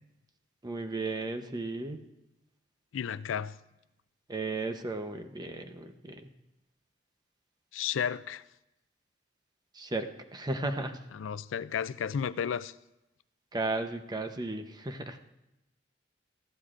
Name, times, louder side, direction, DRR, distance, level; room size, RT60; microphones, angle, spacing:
voice 1, 0.6-2.0 4.3-6.3 9.7-11.0 13.5-15.2, right 2 dB, 20° right, 0.8 m, -35 dB
voice 2, 2.9-3.6 7.7-8.4 11.1-12.7, left 8 dB, 85° left, 0.4 m, -33 dB
19.5 x 14.0 x 2.5 m
head